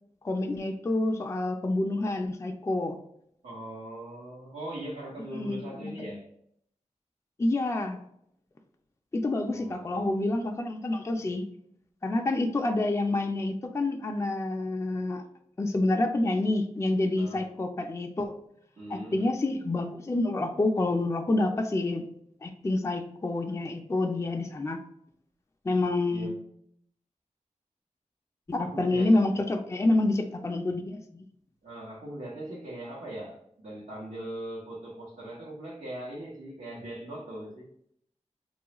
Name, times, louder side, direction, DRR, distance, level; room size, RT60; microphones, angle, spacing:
voice 1, 0.2-3.0 5.4-6.2 7.4-8.0 9.1-11.4 12.0-15.2 15.6-18.4 18.9-22.0 22.4-24.8 25.6-26.3 28.5-31.2, left 2 dB, 25° left, 3 dB, 0.3 m, -28 dB
voice 2, 3.4-6.2 9.5-10.1 17.2-17.5 18.8-19.3 26.1-26.4 28.6-29.2 31.6-37.7, right 1 dB, 80° right, -6 dB, 0.9 m, -40 dB
3.0 x 2.3 x 2.9 m, 0.70 s
wide cardioid pair, 65°, 12 cm